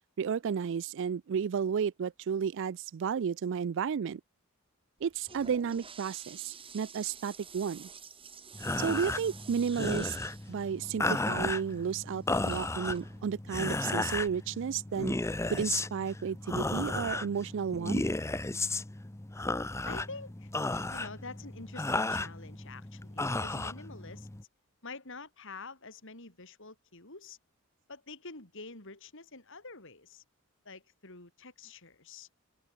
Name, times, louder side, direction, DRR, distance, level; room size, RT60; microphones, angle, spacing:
voice 1, 0.2-4.2 5.0-7.9 8.8-10.2 10.5-15.1 15.5-18.0, right 7 dB, 55° right, 0.4 m, -32 dB
Toilet flush, 5.0-14.4, right 5 dB, 25° right, 7.3 m, -51 dB
sound 1, 8.5-24.4, left 2 dB, 10° left, 0.6 m, -34 dB
voice 2, 19.9-20.5 20.9-24.3 24.8-27.4 27.9-30.2 30.6-32.3, left 3 dB, 60° left, 4.7 m, -47 dB
open air
head